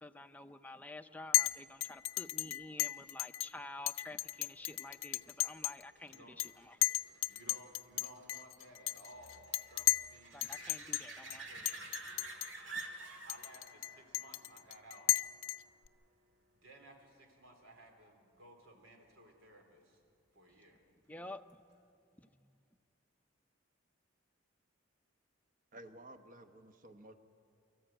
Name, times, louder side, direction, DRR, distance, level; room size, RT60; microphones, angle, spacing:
voice 1, 0.0-6.8 10.3-11.5 12.7-12.9 21.1-21.6 22.2-22.5, left 2 dB, 10° left, 8 dB, 0.5 m, -50 dB
Chink clink, 1.3-1.5 1.8-3.5 3.9-5.8 6.1-6.5 6.8-10.1 10.4-11.0 11.3-11.4 11.7-12.5 12.8-12.9 13.3-15.9, left 14 dB, 75° left, 0.5 m, -34 dB
sound 1, 4.6-15.9 21.5-21.6, right 3 dB, 65° right, 2.0 m, -51 dB
voice 2, 7.3-10.4 11.2-11.9 13.2-15.1 16.5-20.0 20.3-20.8, right 1 dB, 80° right, 3 dB, 3.3 m, -58 dB
voice 3, 25.7-27.1, right 1 dB, 40° right, 8 dB, 1.1 m, -53 dB
24.5 x 14.0 x 9.0 m, 2.5 s
head